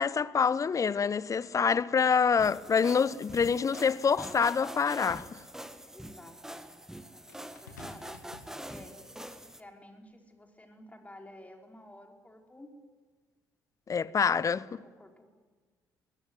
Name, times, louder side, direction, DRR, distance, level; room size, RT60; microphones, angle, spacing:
voice 1, 0.0-5.4 13.9-14.8, left 6 dB, 35° left, 0.8 m, -26 dB
sound 1, 2.4-9.6, right 1 dB, 5° right, 1.7 m, -45 dB
voice 2, 5.9-6.7 7.1-9.0 9.6-12.7 14.8-15.3, left 1 dB, 15° left, 4.9 m, -52 dB
sound 2, 7.3-9.2 10.1-10.3, left 4 dB, 80° left, 1.8 m, -53 dB
22.5 x 21.0 x 9.4 m
figure-of-eight pair, 45°, 9 cm